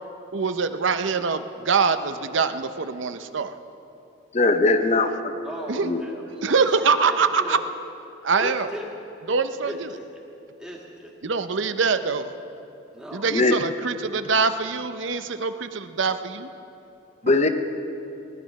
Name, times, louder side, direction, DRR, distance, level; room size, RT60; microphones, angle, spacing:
voice 1, 0.3-3.6 5.7-5.9 6.4-7.6 8.2-8.7 9.3-9.7 11.2-12.3 13.1-16.5 17.3-17.4, right 5 dB, 65° right, 10 dB, 0.6 m, -24 dB
voice 2, 4.3-5.3 5.8-6.0 13.3-13.5 17.2-17.5, left 2 dB, 35° left, 8 dB, 0.8 m, -20 dB
voice 3, 5.4-7.6 8.4-8.9 9.6-10.1 10.6-11.1 12.9-13.3, equal, 5° right, -2 dB, 1.8 m, -37 dB
19.0 x 11.5 x 5.3 m, 2.8 s
head